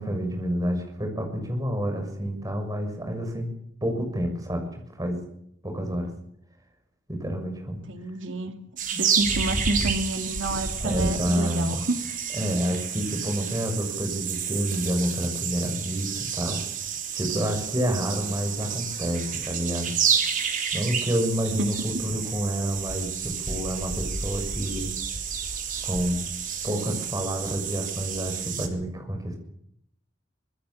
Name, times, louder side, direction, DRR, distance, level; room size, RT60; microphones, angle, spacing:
voice 1, 0.0-3.5 3.8-4.6 5.0-5.3 5.6-6.1 7.1-7.8 8.9-9.0 10.8-11.8 12.3-16.6 17.1-20.0 20.7-25.0 25.8-26.2 26.6-29.4, equal, 20° right, 4 dB, 6.8 m, -29 dB
voice 2, 7.9-8.5 9.0-12.0 18.1-18.4 21.6-22.0 26.7-27.0, right 2 dB, 80° right, 5 dB, 2.7 m, -30 dB
sound 1, 8.8-28.7, right 6 dB, 45° right, 4.0 m, -30 dB
25.5 x 21.0 x 7.3 m, 0.72 s
head